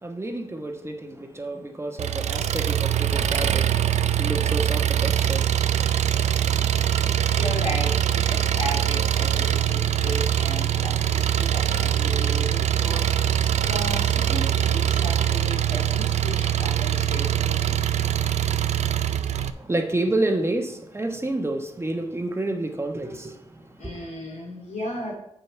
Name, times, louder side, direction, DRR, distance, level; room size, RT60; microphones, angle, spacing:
voice 1, 0.0-7.2 19.1-24.0, right 2 dB, 20° right, 1.2 m, -30 dB
Engine, 2.0-19.5, right 10 dB, 70° right, 0.4 m, -23 dB
voice 2, 7.4-13.0 13.7-17.7 23.8-25.1, equal, 90° left, 2.8 m, -35 dB
7.7 x 5.4 x 4.5 m
cardioid pair, 60°, 12 cm